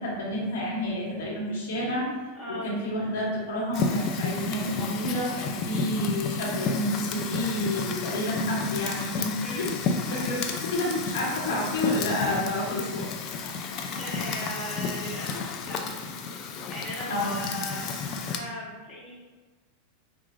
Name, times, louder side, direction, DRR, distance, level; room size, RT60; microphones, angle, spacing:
voice 1, 0.0-2.1 2.5-9.7 10.1-13.8 17.1-17.4, left 1 dB, 85° left, -5 dB, 1.3 m, -30 dB
voice 2, 2.3-2.8 9.4-9.7 10.0-10.5 13.7-15.8 16.7-19.1, equal, 20° left, -7 dB, 1.3 m, -38 dB
Fire, 3.7-18.4, left 4 dB, 40° left, 0.4 m, -32 dB
4.7 x 2.4 x 2.4 m, 1.3 s
supercardioid pair, 135°, 0 cm